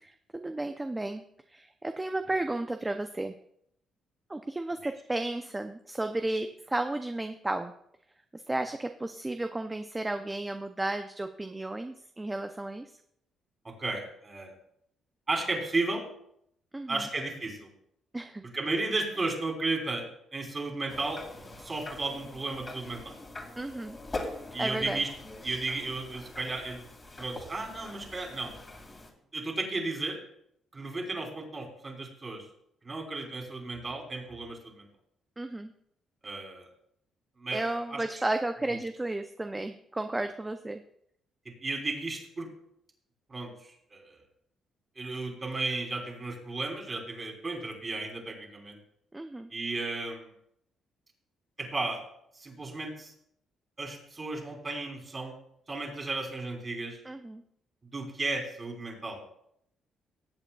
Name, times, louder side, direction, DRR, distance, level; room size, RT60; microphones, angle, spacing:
voice 1, 0.3-1.2 1.5-3.3 4.3-7.7 8.3-12.9 16.7-17.1 18.1-18.4 23.6-24.0 24.6-25.0 35.4-35.7 37.5-40.8 49.1-49.5 57.0-57.4, right 2 dB, 15° right, 7 dB, 0.5 m, -33 dB
voice 2, 13.6-14.5 15.3-16.0 16.9-17.7 18.5-20.0 20.3-21.2 21.6-23.1 24.5-25.1 25.4-26.8 27.2-28.5 29.3-30.2 30.7-32.5 32.8-34.9 36.2-36.7 37.4-38.0 41.6-42.5 43.3-44.2 45.0-48.8 49.5-50.3 51.6-52.0 52.3-53.1 53.8-55.3 55.7-57.0 57.9-59.2, right 3 dB, 30° right, 0 dB, 3.5 m, -34 dB
sound 1, 20.9-29.1, left 2 dB, 30° left, 2.2 m, -43 dB
18.5 x 8.2 x 2.3 m, 0.72 s
cardioid pair, 90°, 0 cm